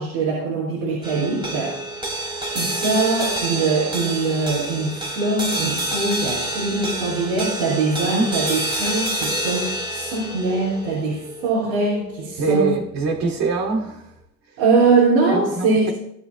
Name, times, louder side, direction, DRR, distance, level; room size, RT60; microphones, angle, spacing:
voice 1, 0.0-1.8 2.5-12.7 14.6-15.9, right 3 dB, 85° right, 5.0 m, -22 dB
sound 1, 1.0-13.5, right 1 dB, 10° right, 2.6 m, -28 dB
voice 2, 12.4-14.1 15.2-15.9, right 4 dB, 55° right, 2.8 m, -23 dB
17.5 x 11.0 x 2.3 m
cardioid pair, 115°, 40 cm